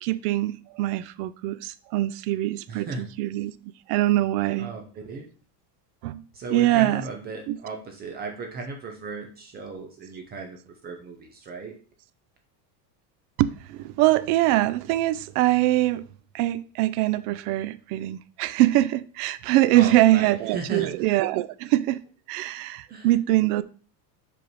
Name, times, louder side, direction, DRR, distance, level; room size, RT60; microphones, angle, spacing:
voice 1, 0.0-3.5 3.9-4.7 6.0-6.2 6.5-7.0 7.5-7.6 13.4-16.1 16.3-22.0 22.3-23.6, right 16 dB, 70° right, 0.5 m, -23 dB
voice 2, 2.7-3.1 4.6-5.3 6.3-11.7 19.7-20.9 22.9-23.1, right 4 dB, 20° right, 0.4 m, -36 dB
5.3 x 5.1 x 4.6 m
cardioid pair, 175°, 47 cm